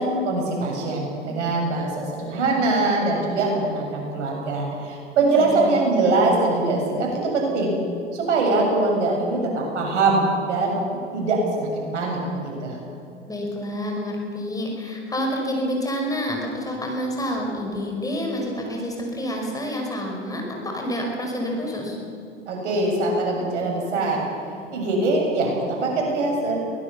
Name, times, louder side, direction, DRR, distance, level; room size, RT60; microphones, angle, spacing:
voice 1, 0.0-7.8 8.1-10.7 11.1-12.8 22.5-24.2 24.7-26.6, right 2 dB, 70° right, 0 dB, 7.6 m, -23 dB
voice 2, 5.4-5.7 13.3-22.0, equal, 10° left, 0 dB, 5.5 m, -28 dB
23.0 x 19.0 x 7.1 m, 2.5 s
hypercardioid pair, 90°, 37 cm